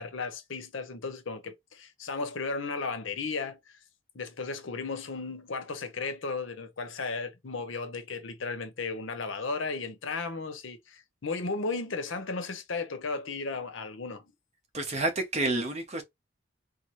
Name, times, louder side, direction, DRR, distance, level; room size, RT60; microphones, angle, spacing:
voice 1, 0.0-3.8 4.1-14.3, left 4 dB, 70° left, 0.8 m, -35 dB
voice 2, 14.7-16.0, right 2 dB, 35° right, 0.8 m, -29 dB
4.1 x 2.1 x 3.1 m
head